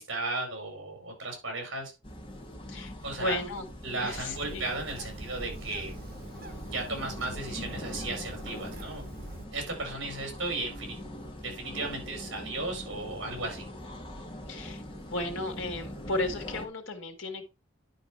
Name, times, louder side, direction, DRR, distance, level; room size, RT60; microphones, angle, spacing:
voice 1, 0.0-1.9 3.0-3.4 3.8-5.9 6.7-9.0 9.5-11.0 11.4-13.6, right 2 dB, 65° right, 3 dB, 4.7 m, -35 dB
sound 1, 2.0-16.7, left 1 dB, 25° left, 1.9 m, -42 dB
voice 2, 2.7-3.6 4.0-4.7 14.5-14.8 15.1-17.4, left 2 dB, 65° left, 4 dB, 2.1 m, -34 dB
Bird, 4.2-9.4, right 1 dB, 50° right, 1.6 m, -44 dB
10.5 x 5.1 x 4.6 m, 0.28 s
head